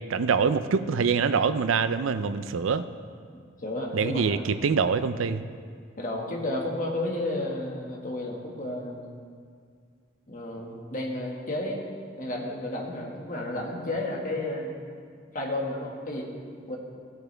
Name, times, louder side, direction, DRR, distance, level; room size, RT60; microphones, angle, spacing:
voice 1, 0.0-2.8 3.9-5.4, right 5 dB, 85° right, 12 dB, 0.5 m, -25 dB
voice 2, 3.6-4.4 6.0-9.1 10.3-11.8 12.2-14.7 15.3-16.3 16.7-16.8, left 1 dB, 45° left, -1 dB, 1.7 m, -32 dB
16.5 x 8.4 x 3.4 m, 2.1 s
head